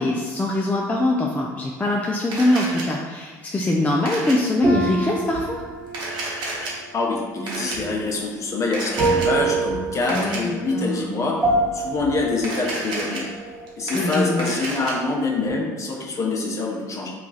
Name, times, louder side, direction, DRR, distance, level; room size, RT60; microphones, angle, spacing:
voice 1, 0.0-5.6 10.0-11.0 13.9-14.5, left 1 dB, 15° left, -2 dB, 0.4 m, -23 dB
Camera, 2.3-2.8 4.1-4.4 5.9-6.7 7.5-7.8 8.7-9.3 10.1-10.4 12.4-13.2 13.7-14.9, right 2 dB, 70° right, 0.9 m, -30 dB
sound 1, 4.6-14.5 14.8-15.5, right 3 dB, 20° right, 1.1 m, -28 dB
voice 2, 6.9-11.4 11.7-13.2 13.8-17.1, left 3 dB, 40° left, -1 dB, 0.7 m, -25 dB
3.0 x 2.3 x 4.0 m, 1.4 s
supercardioid pair, 90°, 8 cm